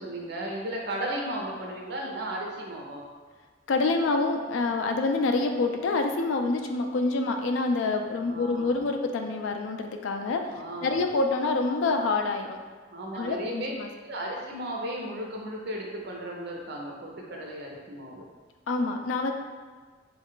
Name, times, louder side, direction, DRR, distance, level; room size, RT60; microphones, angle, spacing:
voice 1, 0.0-3.0 8.3-8.8 10.5-11.0 12.9-13.7 14.0-18.2, right 1 dB, 60° right, -1 dB, 0.7 m, -35 dB
voice 2, 3.7-10.5 10.8-12.6 13.1-13.9 18.7-19.3, left 3 dB, 80° left, 5 dB, 0.4 m, -27 dB
3.5 x 2.3 x 3.7 m, 1.5 s
head